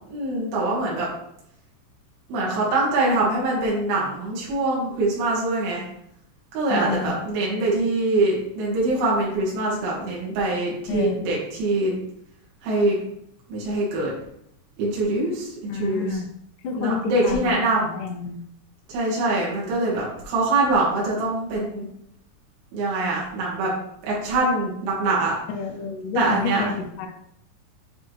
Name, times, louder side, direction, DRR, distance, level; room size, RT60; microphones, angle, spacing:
voice 1, 0.1-1.1 2.3-5.8 6.5-11.9 12.6-13.0 13.5-14.1 14.8-16.2 16.7-17.9 18.9-21.8 22.7-23.7 24.0-25.3 26.2-26.7, right 2 dB, 90° right, -5 dB, 5.1 m, -23 dB
voice 2, 6.7-7.1 10.9-11.2 15.7-16.3 16.6-18.4 25.5-27.1, left 5 dB, 80° left, 2 dB, 1.9 m, -29 dB
10.5 x 6.2 x 3.5 m, 0.75 s
omnidirectional pair, 5.9 m